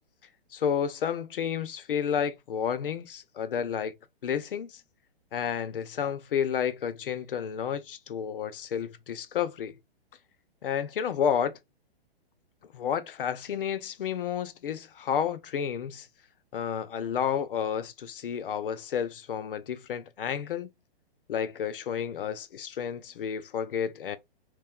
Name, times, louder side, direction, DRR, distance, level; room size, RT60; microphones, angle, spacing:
voice 1, 0.5-3.9 4.2-4.8 5.3-9.8 10.6-11.5 12.7-16.1 16.5-20.7 21.3-24.2, left 8 dB, 60° left, 0.6 m, -31 dB
3.0 x 2.8 x 3.6 m
hypercardioid pair, 175°, 31 cm